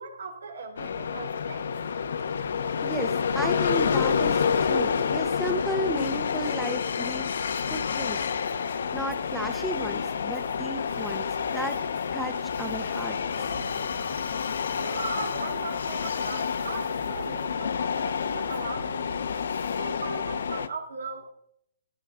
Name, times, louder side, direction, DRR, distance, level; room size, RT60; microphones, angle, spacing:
voice 1, 0.0-1.7 14.7-19.3 19.7-21.3, right 5 dB, 85° right, 4 dB, 3.2 m, -38 dB
sound 1, 0.8-20.7, left 6 dB, 65° left, 1.0 m, -29 dB
voice 2, 2.8-7.4 7.7-8.3 8.6-11.8 12.1-13.5, equal, ahead, 4 dB, 0.8 m, -34 dB
Ocean, 7.5-20.0, right 5 dB, 40° right, 3.2 m, -52 dB
15.5 x 10.0 x 3.7 m, 0.65 s
hypercardioid pair, 170°, 0 cm